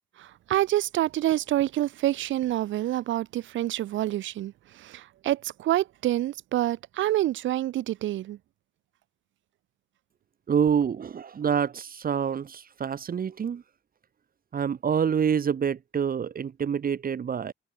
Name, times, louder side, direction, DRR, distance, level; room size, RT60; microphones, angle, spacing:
voice 1, 0.2-8.4, right 14 dB, 75° right, 0.9 m, -27 dB
voice 2, 10.5-13.6 14.5-17.5, right 7 dB, 45° right, 1.9 m, -27 dB
cardioid pair, 90°, 20 cm